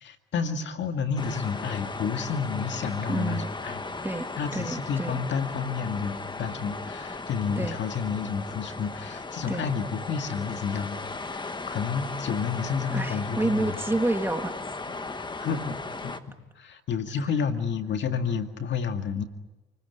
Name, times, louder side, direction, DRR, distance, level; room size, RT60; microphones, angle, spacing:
voice 1, 0.0-3.8 4.4-13.8 15.4-16.1 16.6-19.2, left 6 dB, 65° left, 7 dB, 2.1 m, -30 dB
sound 1, 1.2-16.2, left 3 dB, 25° left, 1.5 m, -36 dB
voice 2, 3.1-3.5 4.0-4.3 4.5-5.2 7.6-7.8 9.5-9.7 12.9-14.5, right 2 dB, 10° right, 7 dB, 2.0 m, -28 dB
29.0 x 20.0 x 9.6 m, 1.1 s
cardioid pair, 90°, 20 cm